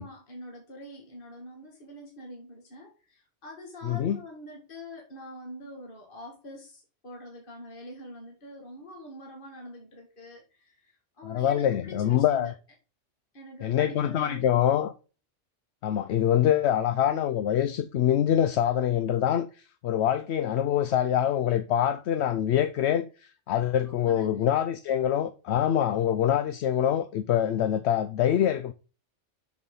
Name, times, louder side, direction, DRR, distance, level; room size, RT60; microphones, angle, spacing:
voice 1, 0.0-12.5 13.3-14.7 23.8-24.5, left 1 dB, 45° left, 2.1 m, -45 dB
voice 2, 3.8-4.2 11.2-12.5 13.6-14.9 15.8-28.7, left 10 dB, 70° left, 0.8 m, -25 dB
7.0 x 6.4 x 5.4 m
omnidirectional pair, 1.2 m